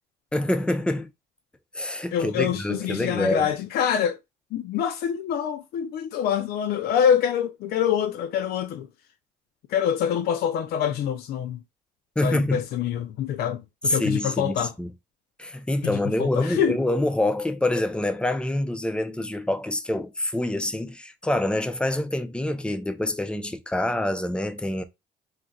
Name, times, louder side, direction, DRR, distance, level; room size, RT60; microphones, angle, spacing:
voice 1, 0.3-1.1 1.7-3.5 12.2-12.6 13.8-14.9 15.4-24.8, left 1 dB, 5° left, 0.4 m, -26 dB
voice 2, 2.1-4.2 4.5-8.9 9.7-11.6 12.2-14.7 15.8-16.8, left 9 dB, 65° left, 0.4 m, -25 dB
2.5 x 2.1 x 3.8 m
cardioid pair, 110°, 17 cm